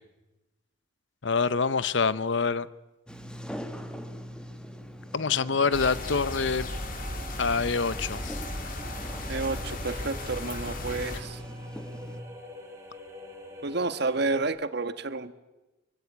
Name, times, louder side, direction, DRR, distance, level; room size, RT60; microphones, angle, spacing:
voice 1, 1.2-2.7 5.1-6.7 7.4-8.4, left 5 dB, 65° left, 0.8 m, -26 dB
Sliding door, 3.1-12.2, equal, 5° left, 1.8 m, -42 dB
sound 1, 5.3-14.4, equal, 15° right, 5.1 m, -46 dB
sound 2, 5.7-11.2, left 1 dB, 45° left, 3.0 m, -36 dB
voice 2, 9.3-11.4 13.6-15.3, right 3 dB, 60° right, 1.4 m, -30 dB
24.5 x 24.0 x 8.6 m
head